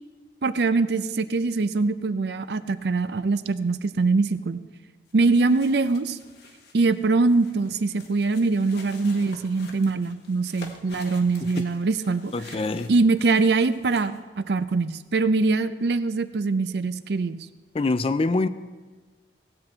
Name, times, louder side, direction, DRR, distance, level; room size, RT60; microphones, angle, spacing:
voice 1, 0.4-4.6 5.1-6.2 6.7-12.3 12.9-17.4, right 3 dB, 65° right, 0.5 m, -23 dB
sound 1, 5.1-14.2, left 3 dB, 65° left, 1.4 m, -48 dB
voice 2, 12.3-12.9 17.7-18.5, left 3 dB, 35° left, 0.4 m, -24 dB
17.5 x 7.8 x 4.4 m
head